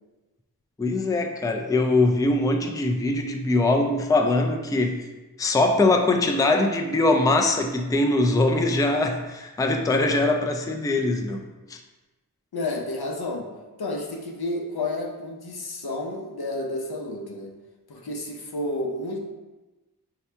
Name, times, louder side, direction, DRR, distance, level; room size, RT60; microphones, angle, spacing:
voice 1, 0.8-5.0 5.4-11.4 11.7-11.8, left 2 dB, 10° left, 4 dB, 0.4 m, -22 dB
voice 2, 12.5-13.5 13.8-17.5 17.9-19.2, left 2 dB, 80° left, 1 dB, 0.7 m, -31 dB
4.5 x 2.8 x 3.3 m, 1.1 s
wide cardioid pair, 45°, 38 cm